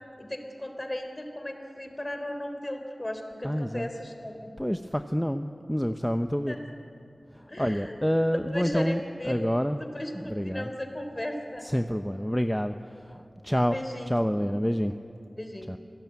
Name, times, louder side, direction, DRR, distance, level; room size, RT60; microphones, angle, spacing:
voice 1, 0.2-4.5 6.5-6.6 7.5-8.0 8.5-9.4 9.8-11.7 13.7-14.2 15.4-15.8, left 1 dB, 30° left, 5 dB, 3.7 m, -36 dB
voice 2, 3.4-3.9 4.6-6.6 7.3-9.8 10.1-10.7 11.6-14.9 15.7-15.8, equal, 5° left, 7 dB, 0.8 m, -28 dB
27.0 x 17.0 x 9.6 m, 2.6 s
wide cardioid pair, 50°, 0 cm